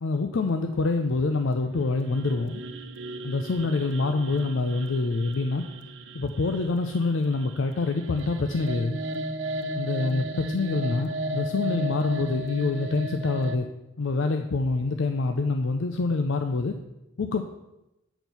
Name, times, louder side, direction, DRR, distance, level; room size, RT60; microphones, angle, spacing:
voice 1, 0.0-2.6 3.2-5.7 6.1-9.0 9.7-13.7 14.0-16.7 17.2-17.4, left 3 dB, 75° left, 5 dB, 0.5 m, -26 dB
sound 1, 1.7-13.6, right 1 dB, 70° right, 0.7 m, -35 dB
7.9 x 4.4 x 6.8 m, 0.93 s
head